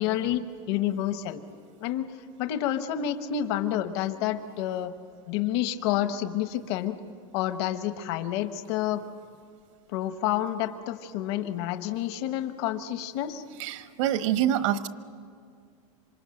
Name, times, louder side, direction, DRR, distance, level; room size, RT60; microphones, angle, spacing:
voice 1, 0.0-1.4 1.8-4.9 5.3-7.0 7.3-9.0 9.9-13.4, left 11 dB, 55° left, 9 dB, 1.1 m, -29 dB
voice 2, 13.6-14.9, right 11 dB, 70° right, 10 dB, 1.3 m, -26 dB
27.0 x 25.0 x 7.7 m, 2.2 s
supercardioid pair, 170°, 16 cm